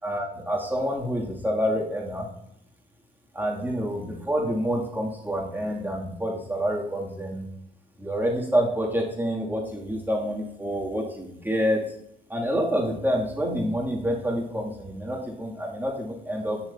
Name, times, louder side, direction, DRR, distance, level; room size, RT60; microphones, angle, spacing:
voice 1, 0.0-2.3 3.3-7.5 8.0-11.8 12.3-16.6, equal, 10° right, -3 dB, 2.8 m, -27 dB
16.5 x 5.7 x 2.9 m, 0.77 s
cardioid pair, 90°, 20 cm